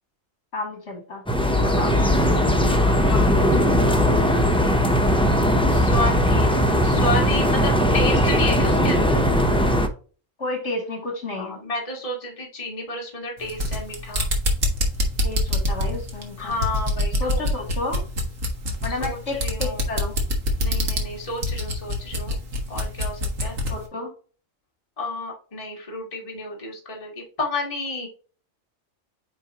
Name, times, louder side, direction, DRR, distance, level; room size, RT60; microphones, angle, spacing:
voice 1, 0.5-1.2 1.6-2.0 10.4-11.6 15.2-16.6 17.1-18.0 18.8-20.1 23.7-24.1, left 2 dB, 60° left, 2 dB, 2.7 m, -31 dB
sound 1, 1.3-9.9, equal, 5° left, 0.6 m, -19 dB
voice 2, 1.6-4.1 5.7-6.6 6.8-9.3 11.4-14.3 16.4-17.4 18.9-19.8 20.6-22.4 22.7-23.5 25.0-28.1, left 2 dB, 25° left, -1 dB, 1.8 m, -31 dB
sound 2, 13.4-23.8, left 1 dB, 75° right, 2.0 m, -25 dB
9.3 x 4.4 x 2.9 m, 0.38 s
omnidirectional pair, 1.4 m